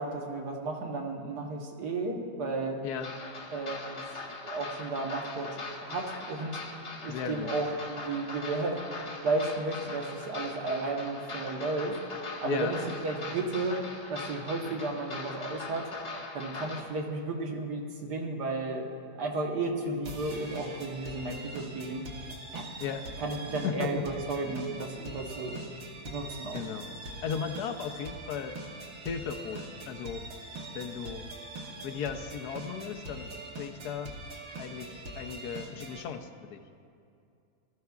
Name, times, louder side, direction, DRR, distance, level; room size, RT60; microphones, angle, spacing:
voice 1, 0.0-2.8 3.5-4.0 4.4-6.6 7.0-12.0 12.4-15.9 16.3-18.9 19.2-22.0 22.5-22.7 23.2-25.6 26.0-26.6, right 3 dB, 75° right, 1 dB, 1.7 m, -33 dB
sound 1, 3.0-16.8, left 3 dB, 40° left, 1.2 m, -41 dB
voice 2, 7.1-7.5 12.4-12.7 22.8-23.1 23.6-24.0 26.5-26.9 27.2-28.6 29.0-30.3 30.7-31.3 31.8-34.1 34.6-36.6, left 7 dB, 70° left, 7 dB, 1.2 m, -36 dB
sound 2, 20.0-36.0, right 2 dB, 55° right, 1.5 m, -43 dB
18.5 x 13.5 x 2.3 m, 2.4 s
omnidirectional pair, 1.8 m